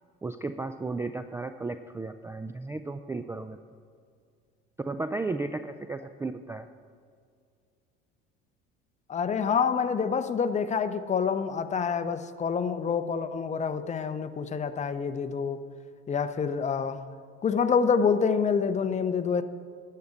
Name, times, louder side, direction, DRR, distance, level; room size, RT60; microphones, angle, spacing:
voice 1, 0.2-3.6 4.8-6.7, right 3 dB, 10° right, 10 dB, 0.3 m, -34 dB
voice 2, 9.1-15.6 16.1-17.0 17.4-19.4, left 6 dB, 20° left, 9 dB, 0.7 m, -27 dB
10.0 x 6.7 x 8.4 m, 2.2 s
hypercardioid pair, 70°, 31 cm